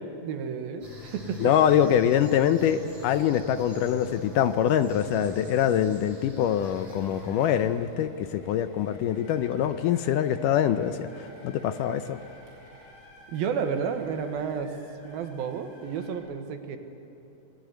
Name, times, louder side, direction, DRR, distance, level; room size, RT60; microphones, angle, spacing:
voice 1, 0.2-1.5 13.3-16.8, right 6 dB, 90° right, 7 dB, 3.3 m, -31 dB
sound 1, 0.8-7.7, left 3 dB, 35° right, 8.9 m, -43 dB
voice 2, 1.4-12.2, left 9 dB, 75° left, 11 dB, 2.1 m, -24 dB
sound 2, 6.5-16.2, equal, 25° left, 6.1 m, -53 dB
25.5 x 20.5 x 9.3 m, 3.0 s
omnidirectional pair, 4.2 m